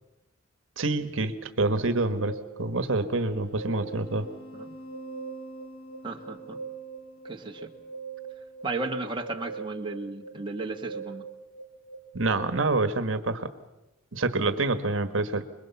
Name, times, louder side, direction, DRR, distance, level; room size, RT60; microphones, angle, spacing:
voice 1, 0.8-4.3 12.1-13.5 14.1-15.4, right 2 dB, 75° right, 10 dB, 1.4 m, -27 dB
sound 1, 2.3-12.4, right 4 dB, 25° left, 2.5 m, -42 dB
voice 2, 6.0-6.6 7.2-7.7 8.6-11.3, right 3 dB, 25° right, 1 dB, 1.7 m, -34 dB
26.0 x 22.0 x 7.2 m, 0.97 s
head